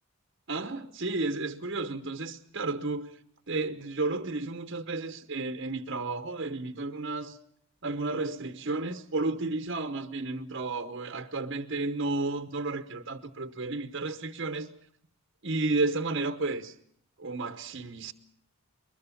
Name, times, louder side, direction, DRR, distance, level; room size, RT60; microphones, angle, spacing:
voice 1, 0.5-3.2 3.5-7.4 7.8-14.7 15.4-16.7 17.2-18.1, right 3 dB, 50° right, 1.0 m, -32 dB
23.0 x 20.5 x 7.1 m
head